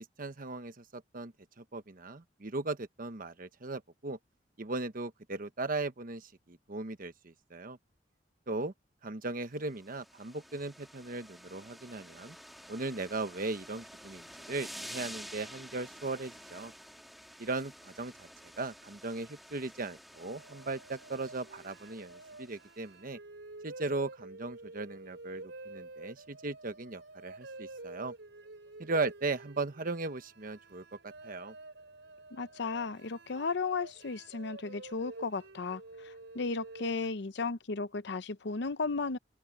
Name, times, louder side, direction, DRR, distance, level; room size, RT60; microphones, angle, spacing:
voice 1, 0.0-1.3 1.6-4.2 4.6-7.8 8.5-8.7 9.0-12.3 12.7-16.7 17.4-18.3 18.6-23.2 23.6-28.1 28.8-31.5, right 3 dB, 50° right, 1.1 m, -38 dB
sound 1, 9.7-22.8, equal, ahead, 2.9 m, -50 dB
sound 2, 20.1-37.1, right 2 dB, 80° right, 4.5 m, -49 dB
voice 2, 32.3-39.2, left 4 dB, 65° left, 0.7 m, -35 dB
open air
head